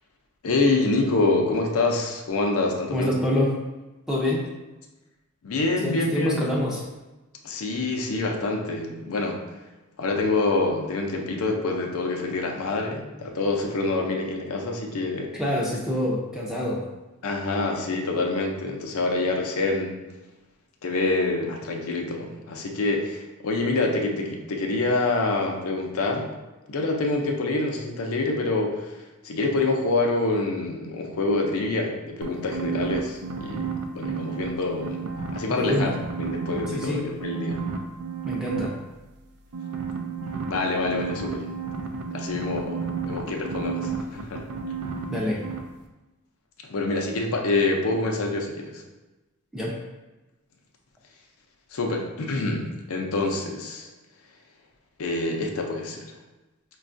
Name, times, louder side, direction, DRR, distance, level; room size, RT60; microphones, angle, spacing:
voice 1, 0.4-3.1 5.4-6.4 7.4-9.4 10.0-15.3 17.2-20.0 20.8-26.3 26.7-28.9 29.2-33.7 33.9-35.1 35.3-35.9 36.2-37.6 40.5-41.5 42.1-44.4 46.7-48.8 51.7-53.9 55.0-56.1, left 2 dB, 70° left, 1 dB, 0.5 m, -26 dB
voice 2, 2.9-3.6 4.1-4.4 5.8-6.8 15.3-16.8 35.5-36.0 36.7-37.0 38.2-38.8 45.1-45.4 49.5-49.8, left 1 dB, 5° right, -4 dB, 0.5 m, -26 dB
sound 1, 32.2-34.5 34.8-36.9 37.2-38.7 39.5-45.2 45.4-45.6, right 6 dB, 80° right, 0.4 m, -31 dB
4.9 x 2.3 x 2.5 m, 1.1 s
head